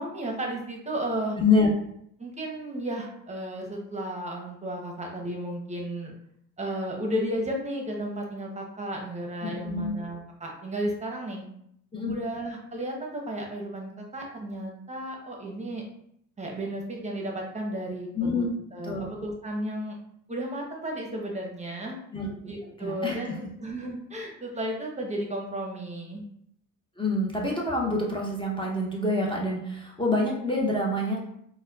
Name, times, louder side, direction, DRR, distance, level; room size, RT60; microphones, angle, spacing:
voice 1, 0.0-1.4 2.2-6.1 6.6-11.4 12.1-15.8 16.4-18.4 18.7-20.0 20.3-22.0 22.4-26.2, right 1 dB, 20° right, 0 dB, 0.8 m, -33 dB
voice 2, 1.4-1.7 9.4-9.9 11.9-12.1 18.1-18.5 18.8-19.1 22.1-23.2 27.0-31.2, left 2 dB, 15° left, -3 dB, 0.7 m, -27 dB
4.2 x 2.2 x 2.3 m, 0.72 s
cardioid pair, 90°, 35 cm